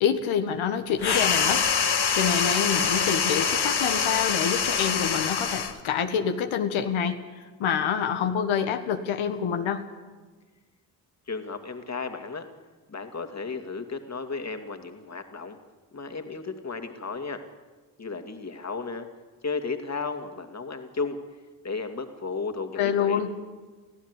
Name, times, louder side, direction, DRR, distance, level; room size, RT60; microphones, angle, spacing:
voice 1, 0.0-1.6 2.1-7.2 7.6-9.8 22.8-23.3, left 7 dB, 70° left, 7 dB, 1.6 m, -26 dB
sound 1, 1.0-5.8, left 6 dB, 50° left, 1.9 m, -25 dB
voice 2, 11.3-12.5 12.9-15.6 15.9-17.4 18.0-19.1 19.4-21.2 21.6-23.2, left 4 dB, 30° left, 6 dB, 2.5 m, -34 dB
24.5 x 15.5 x 8.3 m, 1.3 s
hypercardioid pair, 40°, 49 cm